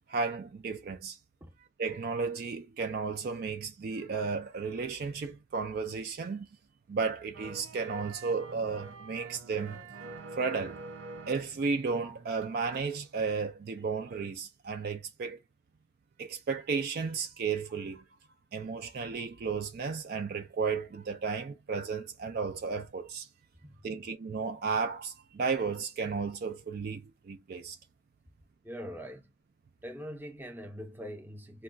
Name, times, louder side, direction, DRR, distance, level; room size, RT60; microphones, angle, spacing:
voice 1, 0.1-1.2 1.8-6.5 6.9-9.8 10.4-10.8 11.3-15.4 16.2-18.0 18.5-23.3 23.8-27.8, right 5 dB, 55° right, 0.4 m, -33 dB
sound 1, 7.3-12.9 13.2-13.3, right 3 dB, 80° right, 0.7 m, -46 dB
voice 2, 23.6-24.0 28.6-29.3 29.8-31.6, equal, 10° right, 0.6 m, -43 dB
2.3 x 2.3 x 3.7 m
head